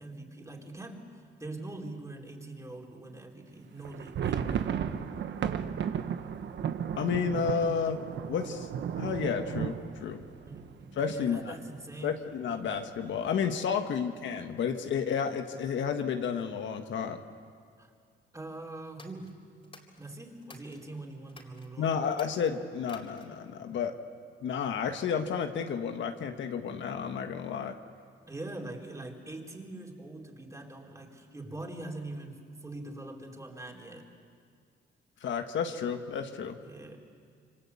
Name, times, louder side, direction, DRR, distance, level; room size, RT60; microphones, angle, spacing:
voice 1, 0.0-4.7 10.5-12.2 17.8-17.9 18.3-19.5 20.0-22.0 28.3-34.1 36.6-37.0, right 2 dB, 15° right, 1 dB, 4.3 m, -43 dB
sound 1, 3.8-11.5 11.8-11.9 12.2-12.4 13.0-13.5, right 8 dB, 65° right, 1.3 m, -34 dB
voice 2, 7.0-8.0 8.3-8.7 9.0-10.2 11.0-11.6 12.0-17.2 21.8-24.0 24.4-27.8 35.2-36.6, left 7 dB, 70° left, 6 dB, 1.6 m, -31 dB
sound 2, 18.9-20.8 21.3-21.7 22.1-23.5, left 3 dB, 30° left, 4.2 m, -54 dB
27.5 x 24.5 x 8.5 m, 2.1 s
cardioid pair, 90°, 20 cm